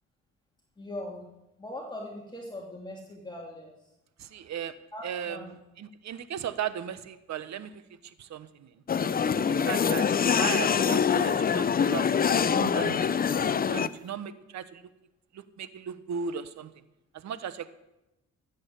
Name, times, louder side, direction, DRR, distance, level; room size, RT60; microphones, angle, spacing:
voice 1, 0.8-1.2 1.6-3.7 4.9-5.5, left 1 dB, 15° left, -2 dB, 2.7 m, -40 dB
voice 2, 4.2-4.7 5.0-5.4 5.8-8.7 9.5-14.8 15.3-16.7 17.1-17.7, right 8 dB, 65° right, 13 dB, 1.1 m, -37 dB
sound 1, 8.9-13.9, left 7 dB, 30° left, 0.5 m, -25 dB
15.0 x 8.2 x 7.2 m, 0.96 s
cardioid pair, 90°, 30 cm